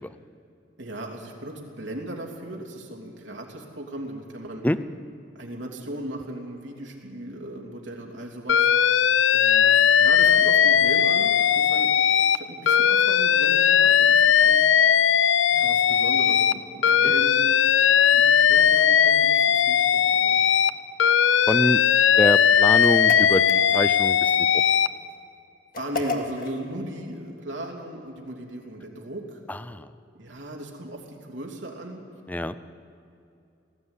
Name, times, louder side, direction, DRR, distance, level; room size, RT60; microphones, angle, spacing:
voice 1, 0.8-4.6 5.3-8.7 9.3-11.9 12.3-14.6 15.5-17.6 18.0-20.4 25.8-29.4 30.1-32.0, right 1 dB, 75° right, 0 dB, 2.9 m, -37 dB
Alarm, 8.5-12.4 12.7-16.5 16.8-20.7 21.0-24.9, left 8 dB, 85° left, 0.5 m, -19 dB
voice 2, 21.5-21.8 22.2-24.6 29.5-29.9 32.3-32.6, left 1 dB, 10° left, 14 dB, 0.5 m, -25 dB
sound 1, 22.8-24.1 25.7-26.6, left 3 dB, 45° left, 1.8 m, -33 dB
18.5 x 14.5 x 9.8 m, 2.6 s
head